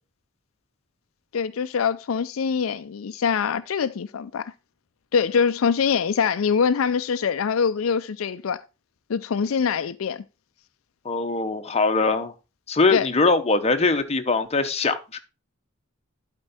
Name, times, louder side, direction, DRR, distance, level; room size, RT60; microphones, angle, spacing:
voice 1, 1.3-4.4 5.1-8.6 9.1-10.2 12.9-13.1, left 6 dB, 85° left, 0.4 m, -24 dB
voice 2, 11.0-12.3 12.7-15.2, left 3 dB, 30° left, 0.9 m, -22 dB
11.5 x 4.5 x 4.1 m
head